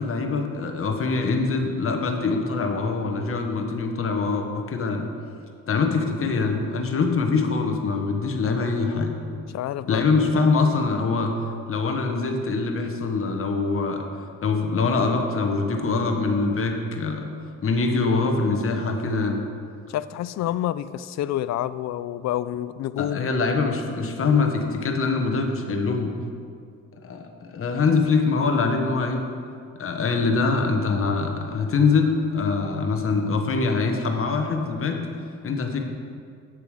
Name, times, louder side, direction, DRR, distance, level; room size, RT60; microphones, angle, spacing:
voice 1, 0.0-5.0 5.7-9.1 9.9-11.3 11.7-14.0 14.4-17.3 17.6-19.4 23.0-26.1 27.0-29.2 29.8-35.1 35.4-35.8, left 4 dB, 45° left, 4 dB, 1.2 m, -23 dB
voice 2, 9.5-10.4 19.9-23.3, left 12 dB, 60° left, 16 dB, 0.4 m, -28 dB
9.5 x 6.8 x 5.0 m, 2.3 s
cardioid pair, 90°, 30 cm